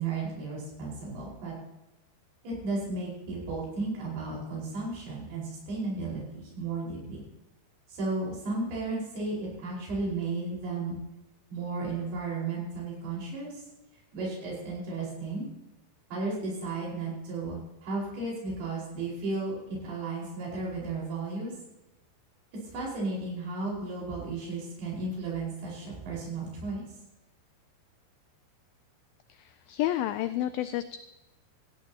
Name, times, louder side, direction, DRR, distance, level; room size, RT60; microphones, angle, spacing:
voice 1, 0.0-1.6 2.4-7.2 7.9-11.0 11.5-13.6 14.1-15.5 16.1-21.5 22.7-26.8, right 3 dB, 70° right, -4 dB, 6.9 m, -34 dB
voice 2, 29.3-31.0, left 13 dB, 85° left, 12 dB, 2.1 m, -30 dB
17.5 x 15.0 x 2.9 m, 0.99 s
omnidirectional pair, 4.8 m